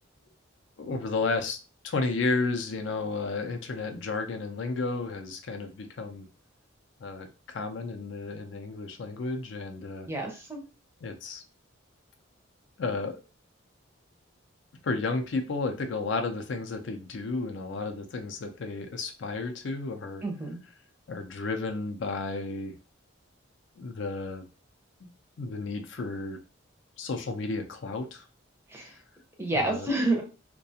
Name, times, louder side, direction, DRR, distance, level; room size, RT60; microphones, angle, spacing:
voice 1, 0.8-1.6 1.8-6.3 7.0-10.1 11.0-11.4 12.8-13.2 14.8-20.2 21.1-22.7 23.8-24.4 25.4-26.4 27.0-28.2 29.5-29.9, left 3 dB, 65° left, 5 dB, 0.4 m, -32 dB
voice 2, 10.1-10.6 20.2-20.6 28.7-29.0 29.4-30.2, right 2 dB, 10° right, 1 dB, 0.5 m, -29 dB
2.3 x 2.2 x 2.7 m, 0.32 s
head